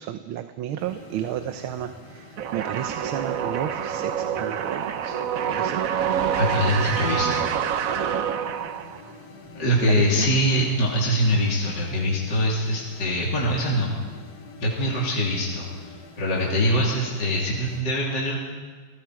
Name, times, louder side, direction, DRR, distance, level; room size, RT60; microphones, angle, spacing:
voice 1, 0.0-5.8 9.8-10.3, right 10 dB, 85° right, 9 dB, 1.6 m, -32 dB
sound 1, 0.8-17.8, left 2 dB, 80° left, 2.8 m, -45 dB
sound 2, 2.4-9.1, right 8 dB, 60° right, 0.9 m, -26 dB
voice 2, 6.4-7.5 9.5-13.9 14.6-18.4, equal, 55° left, -4 dB, 3.6 m, -23 dB
29.5 x 20.0 x 4.8 m, 1.5 s
omnidirectional pair, 2.2 m